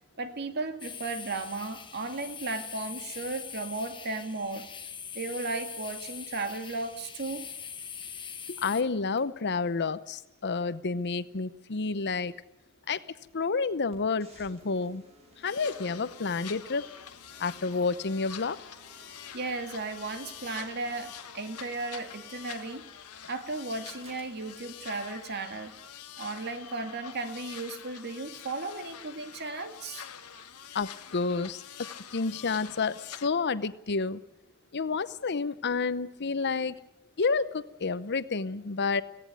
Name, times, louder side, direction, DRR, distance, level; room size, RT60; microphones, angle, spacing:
voice 1, 0.2-4.7 5.1-7.5 19.3-22.8 23.3-25.7 26.2-30.1, right 3 dB, 50° right, 7 dB, 2.0 m, -35 dB
sound 1, 0.8-8.8, left 7 dB, 20° left, 1.3 m, -42 dB
voice 2, 8.5-12.3 12.9-13.0 13.3-15.0 15.4-16.9 17.4-18.6 30.7-34.2 34.7-36.8 37.2-39.0, left 4 dB, 50° left, 15 dB, 0.8 m, -30 dB
sound 2, 13.9-25.9, right 1 dB, 30° right, 4.8 m, -57 dB
sound 3, 15.5-33.3, left 9 dB, 90° left, 1.3 m, -46 dB
17.5 x 16.5 x 9.5 m, 0.87 s
head